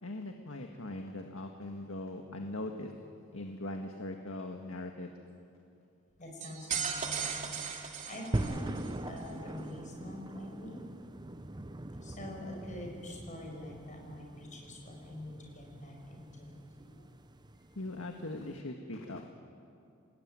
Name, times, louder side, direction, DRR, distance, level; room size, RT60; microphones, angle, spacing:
voice 1, 0.0-2.9 3.3-5.1 17.8-19.2, left 1 dB, 85° left, 3 dB, 1.7 m, -40 dB
voice 2, 6.2-10.8 12.0-17.1, left 1 dB, 40° left, 0 dB, 7.0 m, -45 dB
sound 1, 6.4-8.9, right 6 dB, 40° right, 2.5 m, -37 dB
sound 2, 8.3-18.6, right 1 dB, 20° right, 0.7 m, -42 dB
29.0 x 19.0 x 9.7 m, 2.6 s
head